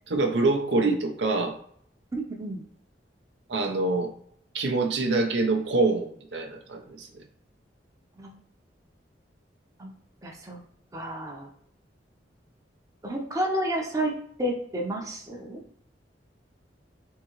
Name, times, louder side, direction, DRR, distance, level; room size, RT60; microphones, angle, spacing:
voice 1, 0.1-1.6 3.5-4.1 4.5-7.1, right 3 dB, 70° right, 3 dB, 0.5 m, -25 dB
voice 2, 2.1-2.6 8.2-8.4 9.8-9.9 10.2-10.6 10.9-11.5 13.0-15.6, right 1 dB, 20° right, 0 dB, 0.6 m, -31 dB
3.6 x 2.7 x 3.0 m, 0.64 s
head